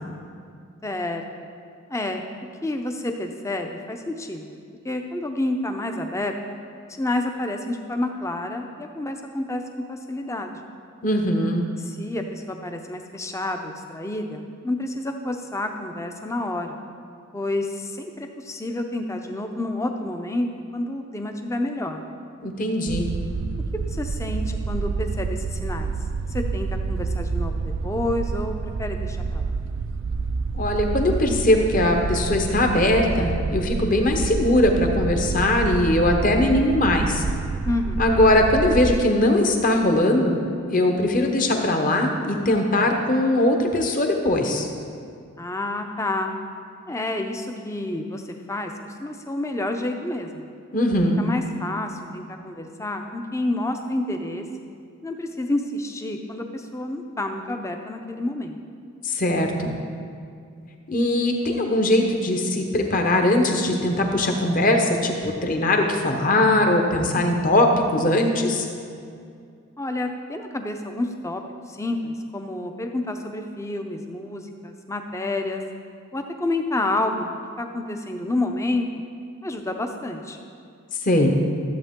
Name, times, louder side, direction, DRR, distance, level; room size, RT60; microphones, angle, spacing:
voice 1, 0.8-1.5 1.9-2.2 2.6-4.6 4.8-6.3 6.9-9.6 9.9-10.6 11.8-16.8 17.3-22.0 23.8-25.9 26.3-29.5 37.6-38.0 45.4-46.3 46.9-50.5 51.2-54.5 55.0-58.6 69.8-71.4 71.7-75.6 76.1-78.9 79.4-80.4, left 2 dB, 15° left, 5 dB, 0.6 m, -29 dB
voice 2, 11.0-11.6 22.4-23.0 30.5-37.2 38.0-40.4 40.7-44.7 50.7-51.2 59.0-59.7 60.9-68.7 81.0-81.3, left 1 dB, 35° left, 3 dB, 1.0 m, -20 dB
sound 1, 22.9-39.0, right 4 dB, 60° right, 0.3 m, -28 dB
13.5 x 8.1 x 3.7 m, 2.3 s
head